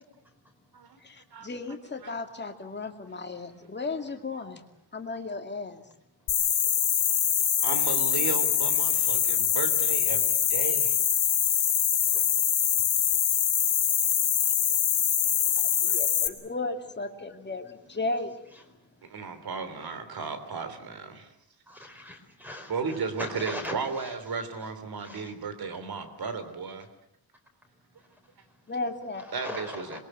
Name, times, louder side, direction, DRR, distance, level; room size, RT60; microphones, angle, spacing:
voice 1, 1.4-4.6 4.9-5.8 15.5-18.3 28.7-29.3, left 3 dB, 25° left, 5 dB, 2.4 m, -35 dB
sound 1, 6.3-16.3, left 9 dB, 90° left, 3.1 m, -24 dB
voice 2, 7.6-11.0 15.9-16.0 19.0-21.3 22.7-26.9 29.3-30.0, right 5 dB, 60° right, 10 dB, 3.4 m, -34 dB
voice 3, 11.9-12.6 13.9-14.0 15.0-15.1 15.4-16.0 18.5-19.3 21.7-24.1 25.0-25.3 27.9-28.6 29.2-30.0, left 1 dB, 5° right, 4 dB, 4.7 m, -42 dB
27.0 x 22.0 x 7.9 m, 0.72 s
wide cardioid pair, 165°, 42 cm